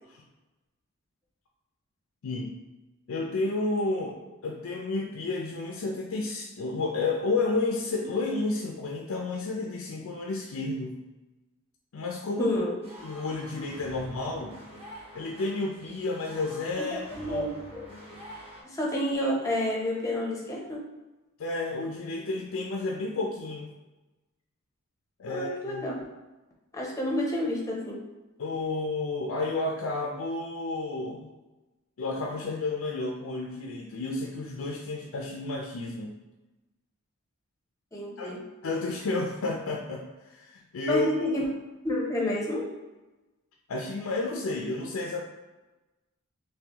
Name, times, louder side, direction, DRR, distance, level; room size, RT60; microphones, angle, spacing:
voice 1, 2.2-2.6 3.1-4.1 4.4-11.0 11.9-12.5 13.0-14.5 15.1-17.5 21.4-23.7 25.2-25.8 28.4-31.3 32.0-36.1 38.2-38.3 38.6-41.1 43.7-45.2, left 3 dB, 70° left, 0 dB, 0.4 m, -31 dB
voice 2, 12.4-12.7 16.9-17.9 18.6-20.8 25.3-26.1 26.7-28.0 37.9-38.4 40.9-41.4 41.8-42.7, left 1 dB, 15° left, -2 dB, 0.6 m, -29 dB
sound 1, 12.8-18.6, equal, 25° right, 1.0 m, -46 dB
3.7 x 3.0 x 2.9 m, 1.1 s
head